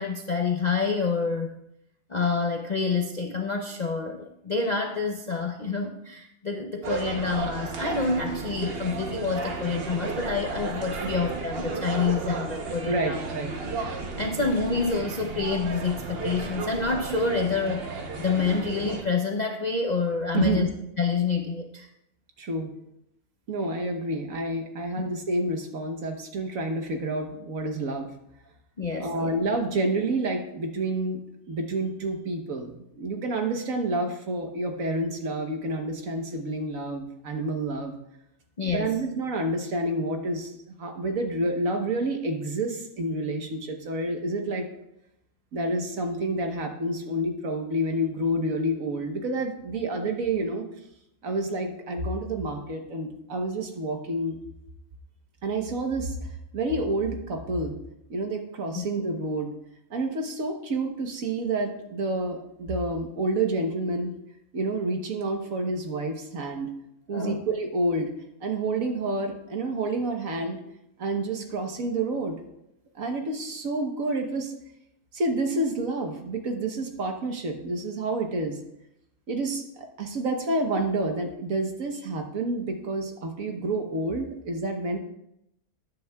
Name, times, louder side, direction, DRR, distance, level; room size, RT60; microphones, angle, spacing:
voice 1, 0.0-1.5 2.1-13.2 14.2-20.7 21.0-21.9 25.0-25.1 28.8-29.3 38.6-39.0 58.7-58.9 67.1-67.4, left 4 dB, 45° left, 1 dB, 0.5 m, -27 dB
sound 1, 6.8-19.0, right 4 dB, 45° right, 1.1 m, -33 dB
voice 2, 12.8-13.5 20.3-20.7 22.4-22.7 23.5-28.1 29.0-31.2 31.5-37.9 38.7-40.5 40.8-44.6 45.5-50.7 51.2-54.4 55.4-56.1 56.5-57.7 58.1-59.5 59.9-64.1 64.5-66.7 67.1-68.1 68.4-70.6 71.0-72.3 72.9-74.5 75.1-78.6 79.3-85.0, right 2 dB, 60° right, 4 dB, 1.5 m, -29 dB
13.5 x 9.3 x 2.3 m, 0.79 s
omnidirectional pair, 1.6 m